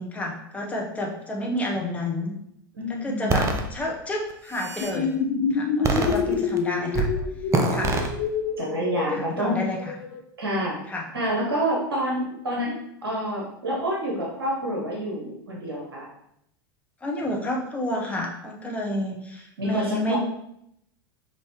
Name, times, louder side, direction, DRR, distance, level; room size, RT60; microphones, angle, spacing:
voice 1, 0.0-2.3 2.9-3.4 3.7-5.1 5.5-7.1 7.7-7.9 9.1-9.9 10.9-11.0 17.0-20.2, left 1 dB, 10° left, -1 dB, 1.0 m, -30 dB
voice 2, 2.7-3.5 8.6-9.6 10.4-10.8 11.1-12.8 13.0-16.1 19.6-20.2, equal, 75° right, -3 dB, 1.0 m, -28 dB
sound 1, 3.3-3.6 4.3-5.0 5.8-6.6 6.9-7.2 7.5-8.1, right 3 dB, 25° right, 0.6 m, -24 dB
sound 2, 4.8-10.2, left 5 dB, 55° left, 0.6 m, -27 dB
5.5 x 2.9 x 3.0 m, 0.75 s
figure-of-eight pair, 85°, 12 cm